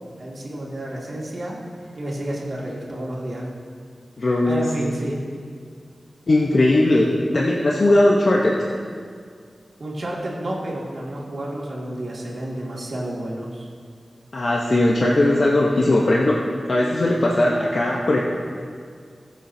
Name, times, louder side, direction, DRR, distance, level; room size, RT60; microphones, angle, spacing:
voice 1, 0.0-1.6 1.9-3.5 4.5-5.2 9.8-13.7, right 1 dB, 55° right, -4 dB, 2.3 m, -30 dB
voice 2, 4.2-4.7 6.3-8.7 14.3-18.2, left 1 dB, 55° left, -3 dB, 1.0 m, -19 dB
21.5 x 7.5 x 2.8 m, 2.1 s
wide cardioid pair, 105°, 0 cm